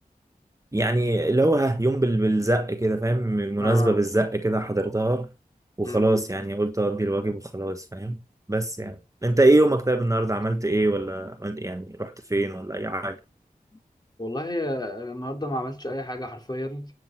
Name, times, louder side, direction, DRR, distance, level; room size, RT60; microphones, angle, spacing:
voice 1, 0.7-5.3 5.8-8.2 8.5-13.2, right 1 dB, 20° right, 1.3 m, -23 dB
voice 2, 3.6-3.9 5.8-6.3 14.2-16.9, left 1 dB, 25° left, 3.6 m, -31 dB
9.3 x 7.9 x 7.5 m
wide cardioid pair, 50°, 15 cm